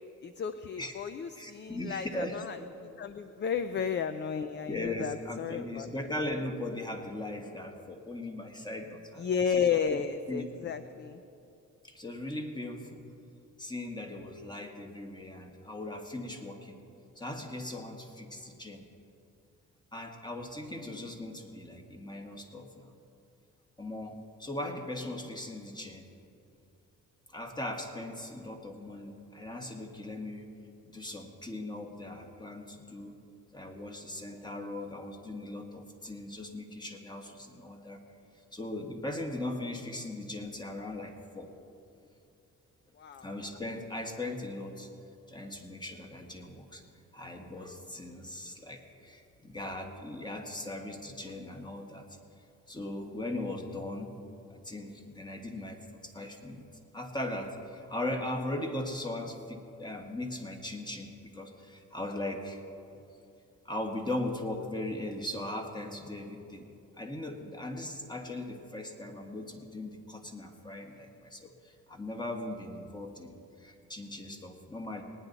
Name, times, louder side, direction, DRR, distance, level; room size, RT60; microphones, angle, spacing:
voice 1, 0.2-2.6 3.0-6.0 9.2-11.2 20.8-21.1 43.0-43.3, left 7 dB, 40° left, 10 dB, 0.5 m, -33 dB
voice 2, 0.8-2.4 4.7-9.2 9.6-9.8 10.3-10.4 11.8-13.0 13.6-16.8 17.1-18.9 19.9-22.9 23.8-26.1 27.3-30.4 30.8-33.1 33.5-38.0 38.5-41.6 43.2-44.9 45.3-46.8 47.1-52.0 52.7-54.2 54.5-56.6 56.9-62.6 63.6-66.6 67.0-75.0, left 1 dB, 15° left, 4 dB, 1.5 m, -39 dB
19.0 x 9.8 x 4.0 m, 2.6 s
cardioid pair, 90°, 30 cm